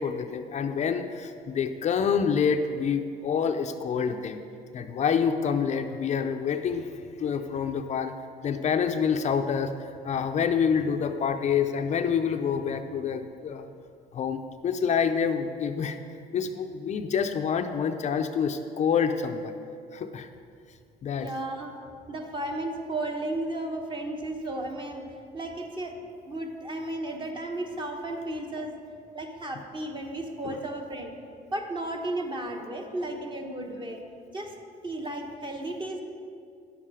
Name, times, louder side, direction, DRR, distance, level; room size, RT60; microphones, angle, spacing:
voice 1, 0.0-4.4 4.7-6.9 7.2-8.1 8.4-13.7 14.1-16.0 16.3-19.5 19.9-20.3 21.0-21.3 28.3-28.4 30.4-30.6, left 6 dB, 45° left, 7 dB, 0.5 m, -27 dB
voice 2, 21.1-21.7 22.1-25.1 25.3-26.0 26.2-28.7 29.1-31.1 31.5-34.0 34.3-34.5 34.8-36.0, right 1 dB, 30° right, 3 dB, 1.2 m, -34 dB
9.8 x 7.5 x 4.9 m, 2.3 s
cardioid pair, 110°, 17 cm